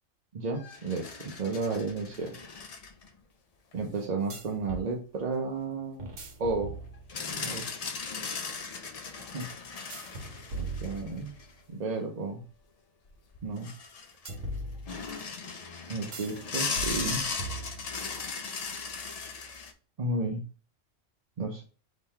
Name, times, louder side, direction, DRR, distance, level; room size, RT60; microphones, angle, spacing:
voice 1, 0.3-2.4 3.7-6.1 6.4-6.7 7.3-7.8 9.2-9.4 10.5-11.4 11.7-12.4 13.4-13.7 15.9-17.3 20.0-20.4 21.4-21.6, right 3 dB, 45° right, 1 dB, 0.6 m, -33 dB
sound 1, 0.6-3.1 3.7-3.8 7.1-11.5 13.1-13.2 13.3-14.4 14.9-19.7, left 5 dB, 80° left, 0.3 m, -37 dB
sound 2, 4.3-4.9 6.0-7.3 9.9-11.6 14.3-15.3 16.1-16.4 16.8-18.1, right 2 dB, 70° right, 1.2 m, -39 dB
3.7 x 3.0 x 4.3 m, 0.37 s
omnidirectional pair, 1.4 m